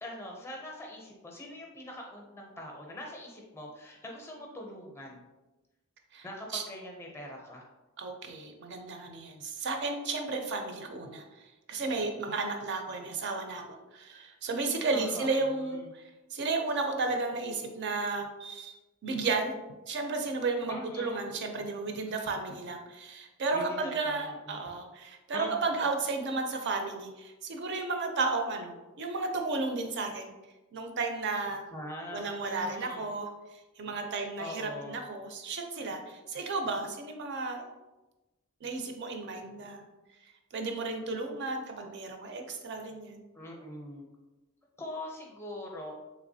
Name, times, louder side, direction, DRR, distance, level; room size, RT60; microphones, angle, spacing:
voice 1, 0.0-5.2 6.2-7.7 14.9-15.9 20.7-21.2 23.5-24.6 25.3-25.9 31.7-33.1 34.1-35.1 43.3-44.1 44.8-46.0, left 1 dB, 10° left, 0 dB, 0.5 m, -43 dB
voice 2, 8.0-11.2 11.7-13.6 13.9-16.0 16.3-19.5 19.9-30.3 30.7-31.7 32.1-33.3 33.8-37.7 38.6-39.8 40.5-43.3, right 3 dB, 50° right, 4 dB, 0.4 m, -33 dB
3.3 x 3.0 x 2.6 m, 1.1 s
head